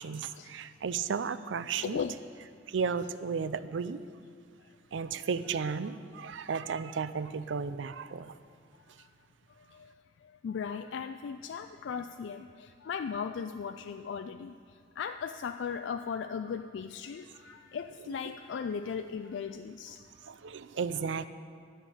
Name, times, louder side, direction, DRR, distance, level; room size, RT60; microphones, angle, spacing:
voice 1, 0.0-2.0 2.7-4.0 4.9-8.4 20.3-21.3, right 5 dB, 80° right, 14 dB, 0.5 m, -34 dB
voice 2, 1.8-2.2 4.6-4.7 9.0-9.1 9.6-9.9 10.2-20.3, left 6 dB, 75° left, 8 dB, 0.3 m, -38 dB
13.0 x 5.6 x 8.4 m, 2.1 s
head